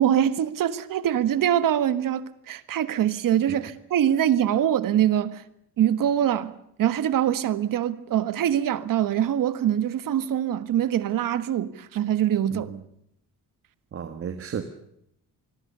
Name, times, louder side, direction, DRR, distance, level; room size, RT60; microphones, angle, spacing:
voice 1, 0.0-5.4 5.8-12.7, right 10 dB, 65° right, 1.5 m, -24 dB
voice 2, 13.9-14.6, right 8 dB, 40° right, 1.6 m, -33 dB
26.5 x 21.5 x 6.8 m
cardioid pair, 180°, 35 cm